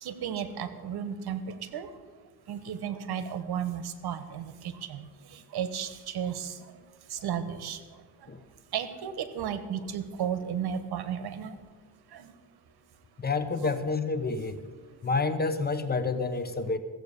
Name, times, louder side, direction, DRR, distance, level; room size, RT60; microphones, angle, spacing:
voice 1, 0.0-1.9 2.5-6.7 7.1-7.8 8.7-11.5 12.1-12.3, right 8 dB, 70° right, 12 dB, 1.2 m, -34 dB
voice 2, 13.2-14.6 15.0-16.8, left 3 dB, 25° left, 11 dB, 0.9 m, -29 dB
15.5 x 7.9 x 6.8 m, 1.5 s
cardioid pair, 105°, 39 cm